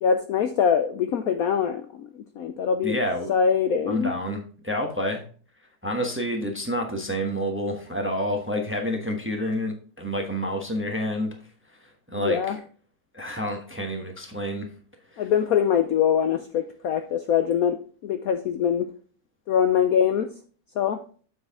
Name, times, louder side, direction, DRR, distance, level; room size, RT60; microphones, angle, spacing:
voice 1, 0.0-2.1 2.4-3.0 3.3-4.1 12.1-12.6 15.2-18.9 19.5-20.3 20.8-21.0, left 7 dB, 70° left, 8 dB, 0.9 m, -23 dB
voice 2, 2.8-3.3 3.9-5.2 5.8-11.3 12.1-12.5 13.1-14.7 15.1-15.2, equal, 10° right, 3 dB, 0.8 m, -28 dB
7.4 x 6.2 x 3.5 m, 0.41 s
omnidirectional pair, 2.0 m